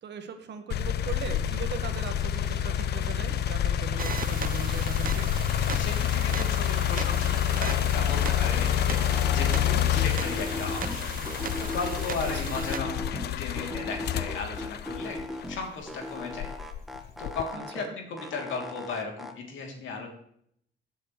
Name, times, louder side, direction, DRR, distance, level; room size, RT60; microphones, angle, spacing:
voice 1, 0.0-5.3 12.3-12.6 17.5-18.0, right 6 dB, 60° right, 7 dB, 1.5 m, -39 dB
sound 1, 0.7-15.7 16.3-17.5, left 11 dB, 55° left, 0.4 m, -28 dB
sound 2, 1.2-1.7 2.0-4.0 4.3-6.3 6.6-8.6 8.9-11.0 11.2-13.3 13.6-15.6 15.9-17.9 18.2-19.3, left 1 dB, ahead, 1.3 m, -40 dB
sound 3, 4.0-12.8, right 7 dB, 45° right, 0.7 m, -38 dB
voice 2, 5.7-11.1 11.6-15.2 15.5-16.5 17.2-20.1, left 4 dB, 75° left, 1 dB, 3.0 m, -36 dB
16.0 x 7.4 x 3.2 m, 0.69 s
cardioid pair, 90°, 20 cm